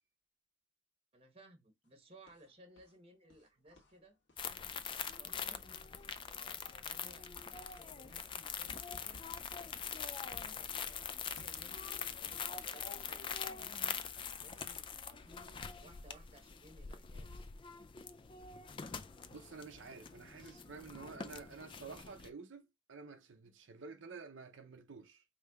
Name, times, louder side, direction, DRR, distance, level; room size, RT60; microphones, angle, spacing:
voice 1, 1.1-4.2 4.9-5.6 6.2-7.3 7.6-9.2 10.2-13.8 14.4-17.5, right 1 dB, 30° right, 1.0 m, -61 dB
sound 1, 1.8-3.0 3.2-7.1 7.3-10.9 11.4-13.5 13.8-16.0, left 1 dB, 75° left, 1.7 m, -63 dB
sound 2, 4.4-22.3, left 7 dB, 25° left, 0.3 m, -44 dB
voice 2, 19.3-25.2, right 4 dB, 80° right, 0.6 m, -51 dB
5.0 x 3.3 x 2.3 m
head